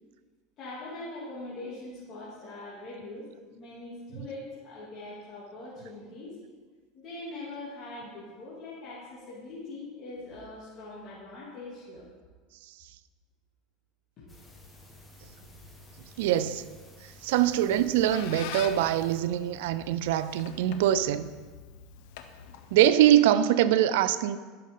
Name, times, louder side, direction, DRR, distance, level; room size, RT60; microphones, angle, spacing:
voice 1, 0.6-6.4 6.9-12.0, left 2 dB, 45° left, 2.7 m, -42 dB
sound 1, 14.3-19.2, left 1 dB, 15° left, 1.5 m, -52 dB
voice 2, 16.2-16.6 17.2-21.3 22.7-24.4, right 11 dB, 80° right, 0.4 m, -23 dB
Squeak, 17.6-23.1, left 8 dB, 70° left, 0.8 m, -44 dB
11.5 x 6.7 x 3.8 m
supercardioid pair, 120°, 0 cm